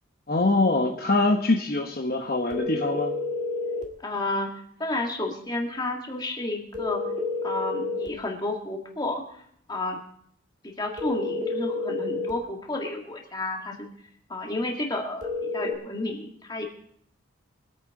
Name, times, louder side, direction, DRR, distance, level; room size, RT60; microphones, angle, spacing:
voice 1, 0.3-3.1, left 2 dB, 45° left, 2 dB, 1.0 m, -24 dB
sound 1, 2.5-3.9 6.7-8.2 11.0-12.4 15.2-15.7, left 3 dB, 35° right, 2.0 m, -29 dB
voice 2, 4.0-7.0 7.4-9.2 9.7-10.0 10.6-13.9 14.3-16.6, left 2 dB, 20° left, 1 dB, 1.9 m, -31 dB
24.0 x 8.7 x 3.7 m, 0.66 s
head